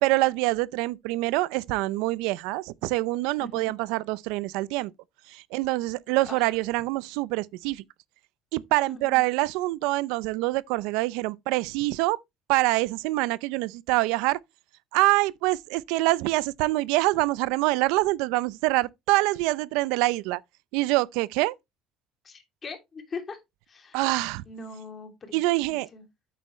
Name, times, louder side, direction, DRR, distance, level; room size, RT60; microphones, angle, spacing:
voice 1, 0.0-4.9 5.3-7.8 8.5-12.2 12.5-14.4 14.9-20.4 20.7-21.6 23.9-24.4 25.3-25.9, right 20 dB, 90° right, 0.5 m, -25 dB
voice 2, 3.4-3.8 6.3-6.5 8.9-9.2 22.2-23.4 23.7-24.0 24.5-26.1, left 3 dB, 30° left, 3.0 m, -41 dB
8.4 x 8.3 x 3.1 m
cardioid pair, 130°, 0 cm